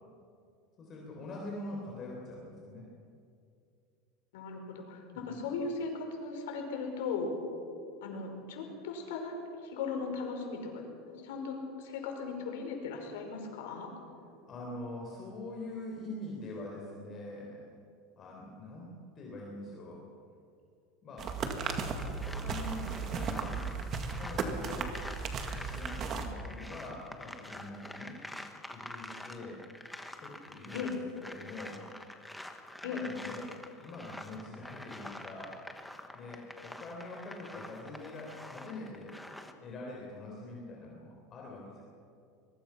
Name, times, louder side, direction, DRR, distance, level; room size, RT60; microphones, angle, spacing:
voice 1, 0.8-2.9 5.1-5.4 14.4-17.7 18.2-20.1 21.0-21.3 22.3-23.6 24.0-24.9 25.7-28.1 28.7-29.6 30.2-31.8 32.8-41.8, left 2 dB, 30° left, -2 dB, 3.9 m, -44 dB
voice 2, 4.3-7.3 8.0-9.4 9.6-13.9 30.7-30.9 32.8-33.0, left 4 dB, 85° left, 3 dB, 5.4 m, -38 dB
sound 1, 21.2-26.3, right 5 dB, 30° right, 2.0 m, -35 dB
sound 2, 22.0-39.5, left 1 dB, 5° left, 1.2 m, -47 dB
24.5 x 22.5 x 6.0 m, 2.4 s
supercardioid pair, 160°, 0 cm